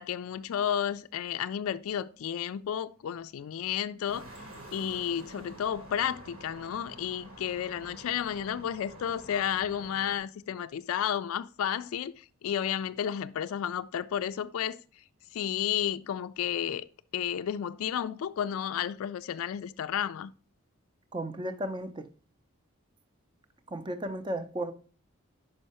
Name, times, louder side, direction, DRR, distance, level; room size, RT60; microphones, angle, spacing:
voice 1, 0.0-4.3 4.7-14.8 15.3-16.9 17.1-20.3, left 9 dB, 75° left, 0.3 m, -32 dB
sound 1, 4.1-10.2, right 1 dB, 70° right, 1.5 m, -48 dB
voice 2, 21.1-22.0 23.7-24.7, right 1 dB, 20° right, 0.5 m, -34 dB
5.5 x 5.5 x 4.1 m
head